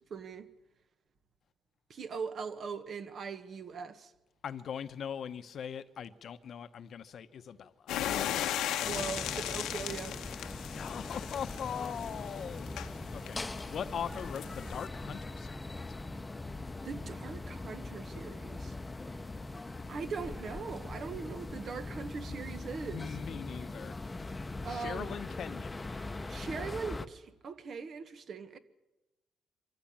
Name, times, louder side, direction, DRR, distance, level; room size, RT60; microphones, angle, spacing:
voice 1, 0.1-0.5 1.9-4.1 8.7-10.2 16.8-18.7 19.9-23.1 24.6-25.1 26.3-28.6, right 5 dB, 55° right, 1.6 m, -40 dB
voice 2, 4.4-7.9 10.7-12.7 13.1-13.4 13.7-15.7 22.3-22.5 22.9-23.9 24.7-25.9, left 8 dB, 60° left, 0.9 m, -40 dB
sound 1, 7.9-14.9, left 11 dB, 90° left, 1.1 m, -37 dB
sound 2, 8.8-27.1, left 2 dB, 20° left, 0.9 m, -41 dB
24.5 x 14.5 x 8.8 m
cardioid pair, 90°, 0 cm